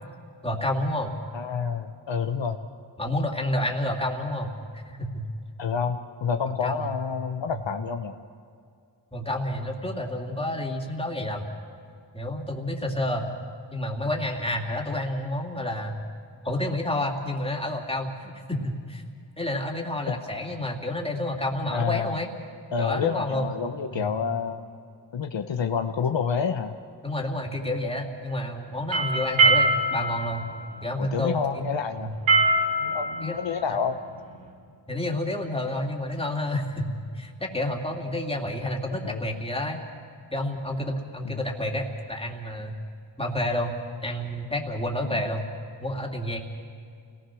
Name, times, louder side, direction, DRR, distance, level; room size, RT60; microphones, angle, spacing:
voice 1, 0.4-1.1 2.3-2.4 3.0-5.2 6.4-7.0 7.5-7.6 9.1-11.5 12.1-13.3 13.7-16.0 16.4-19.0 19.4-22.3 22.8-23.5 23.9-24.1 27.0-30.4 30.8-31.7 32.0-32.2 33.2-33.4 34.9-39.8 40.3-42.7 43.2-43.8 44.0-45.5 45.8-46.4, left 1 dB, 10° left, 0 dB, 3.1 m, -29 dB
voice 2, 1.3-2.6 5.6-8.1 20.1-20.2 21.7-22.2 22.7-24.6 25.1-26.8 31.0-32.1 32.8-34.0 39.0-39.2 41.2-41.4 45.0-45.2, left 6 dB, 65° left, 6 dB, 1.1 m, -28 dB
sound 1, 28.7-34.5, right 2 dB, 85° right, 5.4 m, -24 dB
29.0 x 19.0 x 6.3 m, 2.3 s
cardioid pair, 65°, 47 cm